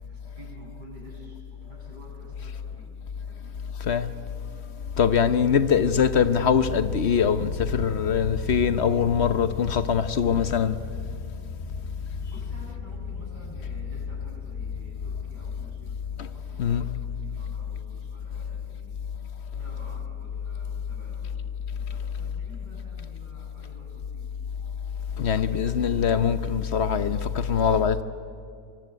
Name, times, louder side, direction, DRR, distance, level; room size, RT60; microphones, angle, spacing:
voice 1, 0.1-3.0 3.2-3.6 12.3-19.0 19.5-24.4 27.3-28.0, equal, 75° right, 8.5 m, -50 dB
sound 1, 4.8-17.2, left 1 dB, 80° left, 4.4 m, -38 dB
voice 2, 5.0-10.8 16.2-16.3 16.6-16.8 25.2-28.0, left 7 dB, 50° left, 0.9 m, -23 dB
24.5 x 23.5 x 9.3 m
omnidirectional pair, 1.8 m